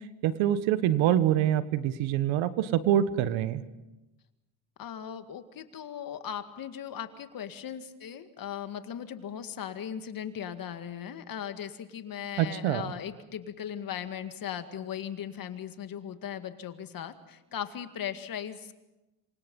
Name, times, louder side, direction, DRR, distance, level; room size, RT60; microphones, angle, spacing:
voice 1, 0.2-3.6 12.4-12.9, right 11 dB, 70° right, 13 dB, 1.6 m, -25 dB
voice 2, 4.8-18.7, left 9 dB, 45° left, 9 dB, 2.1 m, -38 dB
27.5 x 24.5 x 5.5 m, 1.0 s
supercardioid pair, 105°, 48 cm